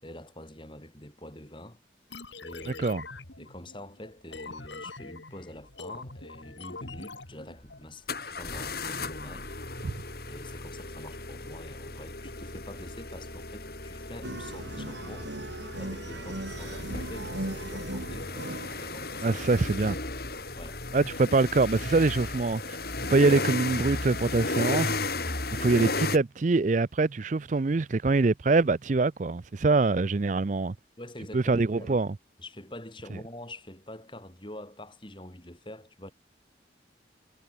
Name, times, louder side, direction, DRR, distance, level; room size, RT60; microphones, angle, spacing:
voice 1, 0.0-1.8 2.4-3.0 3.4-9.5 10.3-15.3 15.8-18.3 18.8-20.0 20.6-20.9 31.0-32.0 32.4-36.1, left 1 dB, 25° left, 5.9 m, -46 dB
sound 1, 2.1-7.8, left 3 dB, 75° left, 3.7 m, -43 dB
sound 2, 6.9-7.0 8.1-26.2, left 3 dB, 55° left, 3.9 m, -35 dB
sound 3, 14.2-19.6, right 1 dB, 75° right, 3.9 m, -38 dB
voice 2, 19.2-20.0 20.9-22.8 23.1-25.0 25.6-30.7 31.3-32.1, right 3 dB, 40° right, 0.5 m, -24 dB
head